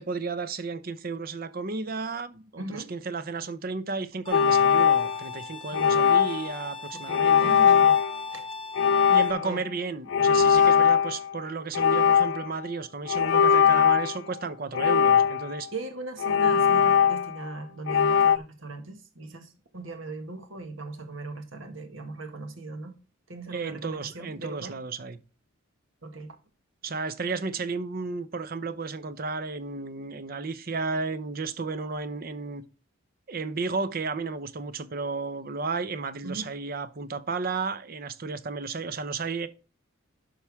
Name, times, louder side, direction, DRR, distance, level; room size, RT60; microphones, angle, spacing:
voice 1, 0.0-7.5 9.0-15.7 23.5-25.2 26.8-32.6 33.3-39.5, right 4 dB, 45° right, 0.7 m, -33 dB
voice 2, 2.6-2.9 5.7-6.1 6.9-8.0 8.3-8.5 9.3-9.7 15.7-22.9 23.3-24.8 26.0-26.4 36.2-36.5, right 2 dB, 75° right, 1.8 m, -39 dB
sound 1, 4.3-5.4 5.7-6.5 7.1-8.2 8.8-9.6 10.1-11.4 11.7-12.5 13.1-14.2 14.7-15.7 16.2-17.5 17.9-18.4, left 7 dB, 60° left, 0.4 m, -21 dB
Bowed string instrument, 4.3-9.3, left 3 dB, 25° left, 0.7 m, -40 dB
11.5 x 5.8 x 3.6 m
head